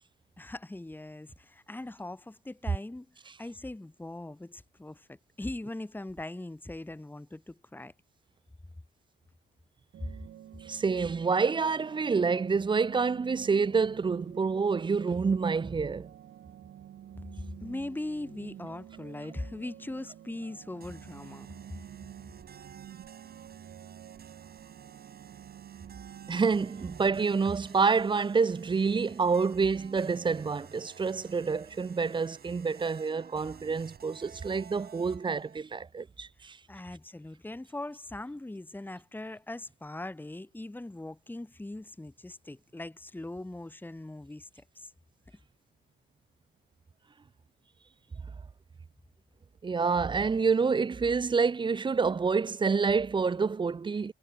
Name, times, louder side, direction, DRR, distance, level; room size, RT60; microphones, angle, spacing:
voice 1, 0.4-7.9 17.6-21.5 36.7-44.9, left 2 dB, 10° left, 1.9 m, -40 dB
sound 1, 9.9-27.4, right 11 dB, 70° right, 2.6 m, -49 dB
voice 2, 10.6-16.1 26.3-36.6 49.6-54.1, right 5 dB, 25° right, 0.6 m, -28 dB
sound 2, 20.8-35.6, right 7 dB, 50° right, 6.0 m, -52 dB
cardioid pair, 90°, 20 cm